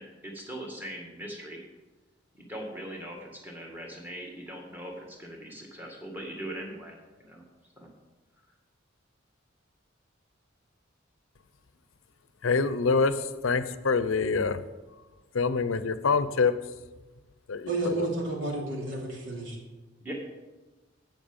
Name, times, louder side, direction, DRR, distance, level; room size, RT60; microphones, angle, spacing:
voice 1, 0.0-1.6 2.3-7.4 7.8-7.9 20.0-20.1, right 1 dB, 10° right, 0 dB, 1.8 m, -40 dB
voice 2, 12.4-14.6 15.3-16.6 17.5-18.1, left 4 dB, 90° left, 13 dB, 0.6 m, -26 dB
voice 3, 17.7-19.6, right 2 dB, 75° right, -1 dB, 2.8 m, -31 dB
16.0 x 5.9 x 5.4 m, 1.2 s
head